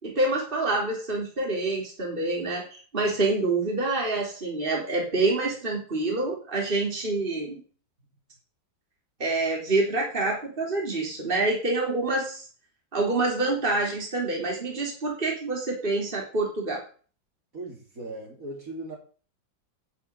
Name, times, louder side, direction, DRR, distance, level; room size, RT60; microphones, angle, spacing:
voice 1, 0.0-7.6 9.2-12.5 12.9-16.8, right 2 dB, 25° right, -1 dB, 3.8 m, -27 dB
voice 2, 17.5-19.0, right 2 dB, 45° right, -1 dB, 4.1 m, -38 dB
11.5 x 7.2 x 8.9 m, 0.41 s
omnidirectional pair, 2.1 m